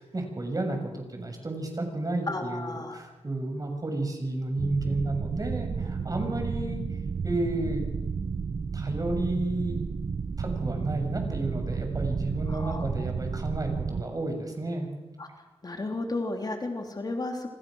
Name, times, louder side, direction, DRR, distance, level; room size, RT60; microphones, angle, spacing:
voice 1, 0.0-6.8 7.2-7.8 8.7-9.8 10.4-14.9, right 2 dB, 35° right, 4 dB, 6.8 m, -32 dB
voice 2, 2.3-3.0 12.5-12.9 15.2-15.3 15.6-17.5, left 2 dB, 35° left, 3 dB, 3.3 m, -33 dB
sound 1, 4.6-14.0, right 5 dB, 55° right, 1.0 m, -32 dB
28.5 x 25.5 x 6.4 m, 1.1 s
wide cardioid pair, 110°, 11 cm